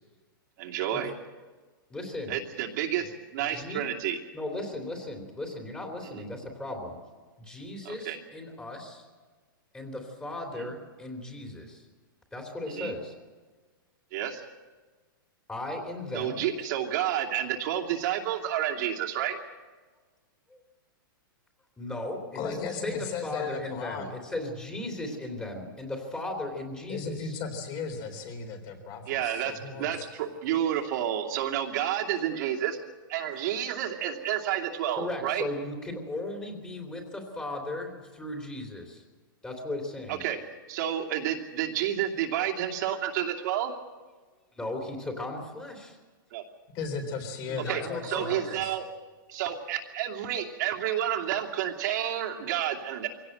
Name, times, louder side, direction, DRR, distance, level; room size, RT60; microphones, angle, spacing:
voice 1, 0.6-1.1 2.3-4.2 6.1-6.2 7.8-8.2 10.6-10.7 12.7-12.9 14.1-14.4 16.1-19.4 29.1-32.8 33.1-35.5 40.1-40.4 40.7-43.7 46.3-46.4 47.7-48.9 49.3-53.1, right 10 dB, 55° right, 2 dB, 2.6 m, -30 dB
voice 2, 1.9-2.4 3.5-3.8 4.3-7.0 7.4-9.0 9.7-11.8 12.3-13.1 15.5-16.4 20.5-20.6 21.8-27.4 34.9-39.0 39.4-40.2 44.6-46.0 47.5-48.4, left 2 dB, 10° left, 1 dB, 3.2 m, -36 dB
voice 3, 22.3-24.1 26.9-30.1 46.7-48.8, left 5 dB, 35° left, 6 dB, 3.9 m, -36 dB
23.5 x 17.5 x 7.9 m, 1.4 s
hypercardioid pair, 145°, 12 cm